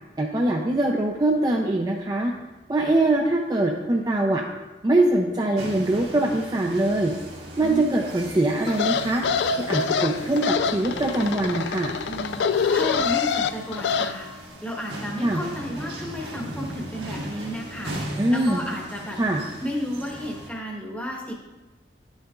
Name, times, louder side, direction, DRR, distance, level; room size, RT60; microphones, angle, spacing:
voice 1, 0.2-2.3 2.7-4.4 4.8-7.1 7.6-9.2 9.6-11.9 15.2-15.4 18.2-18.6 19.2-19.4, right 2 dB, 20° right, 1 dB, 0.4 m, -23 dB
sound 1, 5.5-20.5, right 1 dB, 75° right, 1.6 m, -38 dB
voice 2, 7.6-8.1 12.1-14.3 14.6-19.2 19.6-21.3, equal, 10° left, -1 dB, 1.0 m, -33 dB
sound 2, 8.7-14.1, left 6 dB, 80° left, 0.3 m, -25 dB
10.5 x 6.4 x 2.3 m, 1.1 s
head